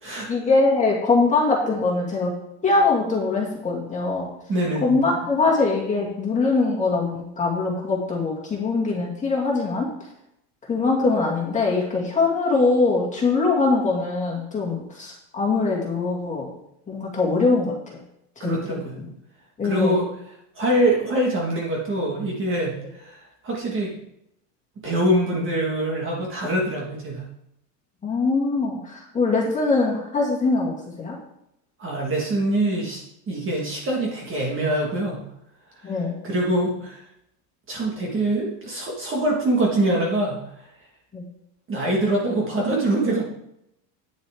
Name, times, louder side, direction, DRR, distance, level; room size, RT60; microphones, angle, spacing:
voice 1, 0.3-2.3 2.6-4.3 4.8-9.9 10.7-16.5 16.9-18.0 18.4-19.1 19.6-19.9 28.0-31.2 35.8-36.2 41.1-41.2, left 3 dB, 15° left, -3 dB, 2.3 m, -22 dB
voice 2, 4.5-4.9 18.4-19.0 19.6-20.1 20.6-23.2 23.4-23.9 24.8-27.2 31.8-33.0 33.3-35.2 35.8-35.9 36.2-37.0 37.7-40.4 41.7-43.3, right 1 dB, 25° right, -2 dB, 1.7 m, -24 dB
9.6 x 8.0 x 3.6 m, 0.78 s
cardioid pair, 155°, 49 cm